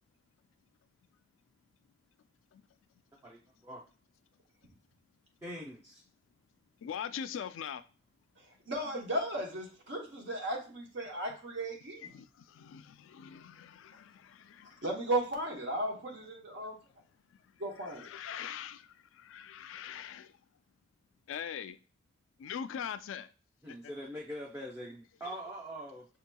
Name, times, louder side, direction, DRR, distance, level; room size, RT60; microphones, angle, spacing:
voice 1, 3.2-3.8 5.4-6.0 23.6-26.1, equal, 15° right, 0.5 m, -43 dB
voice 2, 6.8-7.8 12.0-14.8 18.0-20.3 21.3-21.8 22.4-23.3 23.7-23.8, left 8 dB, 80° left, 0.3 m, -42 dB
voice 3, 8.7-12.1 14.8-16.8 17.6-18.1, right 1 dB, 65° right, 0.8 m, -35 dB
6.0 x 2.8 x 2.2 m
head